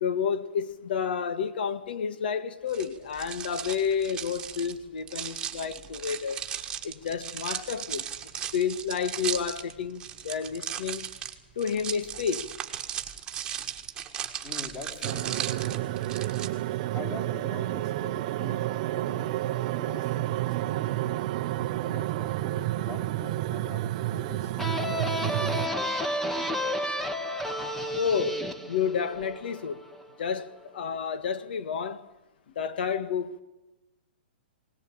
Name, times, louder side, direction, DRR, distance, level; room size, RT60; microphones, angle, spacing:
voice 1, 0.0-6.4 6.8-8.1 8.5-11.1 11.6-12.5 28.0-29.9 30.2-32.1 32.6-33.4, left 7 dB, 65° left, 1.9 m, -30 dB
sound 1, 2.7-16.5, right 9 dB, 15° right, 1.7 m, -36 dB
voice 2, 14.4-15.9 16.9-21.0 21.8-24.5, left 3 dB, 30° left, 4.9 m, -44 dB
sound 2, 15.0-25.7, right 15 dB, 40° right, 0.8 m, -30 dB
sound 3, 24.6-30.0, equal, 5° left, 1.2 m, -31 dB
21.0 x 19.5 x 8.8 m
hypercardioid pair, 155°, 6 cm